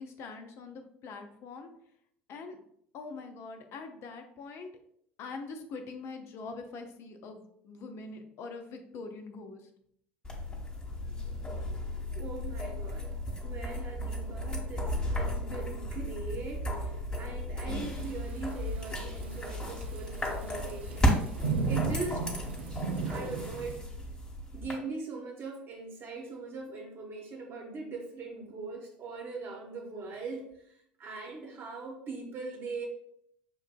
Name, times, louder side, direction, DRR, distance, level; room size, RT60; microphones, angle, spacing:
voice 1, 0.0-1.7 2.3-2.6 2.9-4.7 5.2-9.6, left 4 dB, 45° left, 6 dB, 0.6 m, -43 dB
sound 1, 10.2-24.8, equal, 15° left, 1.1 m, -34 dB
voice 2, 12.1-22.3 23.0-23.8 24.5-32.9, right 3 dB, 40° right, -1 dB, 1.1 m, -41 dB
Thunderstorm / Rain, 17.8-23.8, right 5 dB, 70° right, 0.4 m, -36 dB
6.0 x 2.5 x 2.2 m, 0.70 s
figure-of-eight pair, 65°, 6 cm